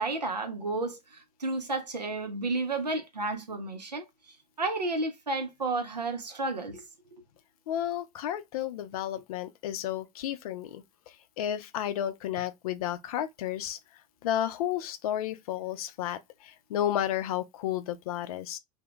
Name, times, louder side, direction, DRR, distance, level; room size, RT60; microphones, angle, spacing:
voice 1, 0.0-4.1 4.6-6.8, right 3 dB, 90° right, 0.5 m, -32 dB
voice 2, 7.7-10.8 11.4-13.8 14.2-16.2 16.7-18.6, left 11 dB, 65° left, 0.4 m, -32 dB
2.2 x 2.1 x 3.4 m
figure-of-eight pair, 75°, 21 cm